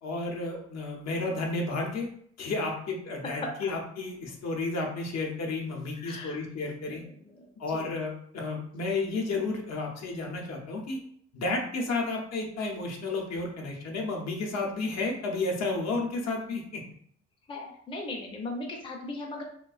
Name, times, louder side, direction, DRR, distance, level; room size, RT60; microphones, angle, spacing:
voice 1, 0.0-2.1 2.4-7.0 7.6-11.0 11.3-16.8, left 3 dB, 60° left, 1 dB, 0.7 m, -32 dB
voice 2, 3.2-3.7 5.9-6.4 6.9-7.9 17.5-19.4, left 2 dB, 20° left, 0 dB, 0.4 m, -38 dB
2.3 x 2.2 x 2.3 m, 0.63 s
cardioid pair, 90°, 30 cm